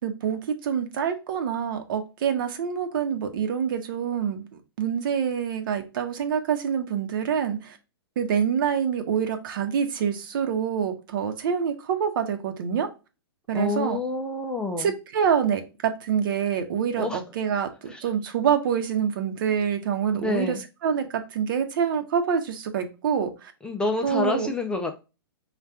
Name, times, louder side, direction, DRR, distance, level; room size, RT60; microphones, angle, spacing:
voice 1, 0.0-4.5 4.8-7.8 8.2-12.9 13.5-14.0 14.8-20.6 20.8-23.5 24.0-24.5, right 7 dB, 60° right, 7 dB, 1.0 m, -26 dB
voice 2, 13.5-14.9 17.0-17.2 17.9-18.1 20.2-20.6 23.6-25.0, left 3 dB, 5° left, 4 dB, 0.5 m, -28 dB
4.2 x 2.5 x 3.4 m, 0.29 s
hypercardioid pair, 130°, 13 cm